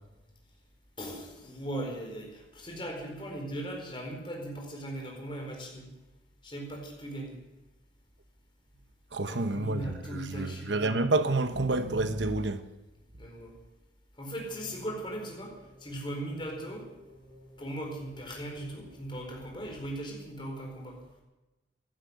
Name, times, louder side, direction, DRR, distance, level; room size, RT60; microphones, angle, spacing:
voice 1, 1.0-5.9 6.4-7.4 9.2-10.8 13.2-13.5 14.1-16.9 17.6-21.0, right 1 dB, 25° left, 4.5 m, -39 dB
voice 2, 9.1-12.6, right 2 dB, 75° right, 1.0 m, -29 dB
sound 1, 14.3-19.9, left 1 dB, 35° right, 4.8 m, -53 dB
15.0 x 12.0 x 8.1 m
head